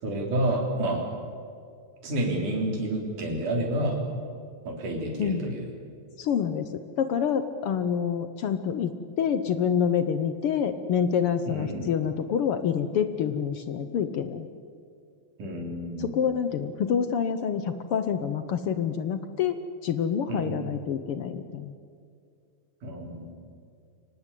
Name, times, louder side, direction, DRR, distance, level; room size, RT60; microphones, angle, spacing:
voice 1, 0.0-1.0 2.0-4.0 4.7-5.7 11.5-11.9 15.4-16.2 20.3-20.7 22.8-23.3, right 1 dB, 85° right, 1 dB, 5.1 m, -29 dB
voice 2, 6.2-6.7 7.0-14.5 16.0-19.6 19.8-21.7, left 7 dB, 70° left, 10 dB, 1.4 m, -27 dB
24.0 x 18.5 x 8.4 m, 2.3 s
omnidirectional pair, 3.5 m